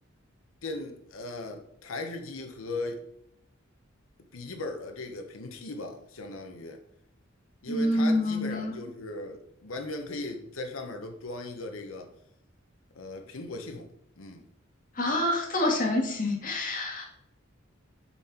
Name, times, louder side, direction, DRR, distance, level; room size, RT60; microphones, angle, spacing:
voice 1, 0.6-3.0 4.3-6.8 7.6-12.1 12.9-13.9 14.2-14.4, left 2 dB, 90° left, 4 dB, 1.0 m, -38 dB
voice 2, 7.7-8.7 14.9-17.1, left 1 dB, 45° left, 0 dB, 1.8 m, -27 dB
6.9 x 4.2 x 4.3 m, 0.73 s
head